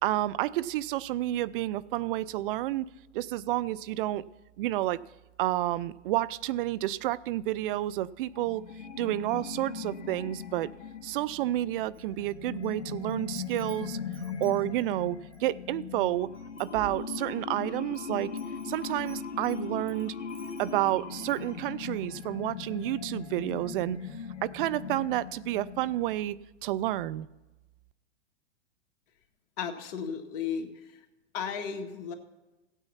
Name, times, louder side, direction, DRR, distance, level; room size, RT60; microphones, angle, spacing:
voice 1, 0.0-2.9 3.1-4.2 4.6-5.0 5.4-8.6 9.0-10.7 11.0-14.0 14.4-16.3 16.6-18.3 18.6-20.1 20.6-24.0 24.4-27.3, right 15 dB, 50° right, 19 dB, 0.5 m, -30 dB
sound 1, 8.3-26.2, left 6 dB, 85° left, 1.6 m, -39 dB
Wind chime, 11.9-12.7 13.1-15.5 16.0-16.1 16.3-17.5 17.9-20.9 21.3-21.5, right 3 dB, 75° right, 4.4 m, -53 dB
voice 2, 29.6-31.1 31.3-32.1, left 7 dB, 40° left, 4 dB, 1.9 m, -35 dB
16.0 x 9.1 x 5.7 m, 1.1 s
hypercardioid pair, 120°, 36 cm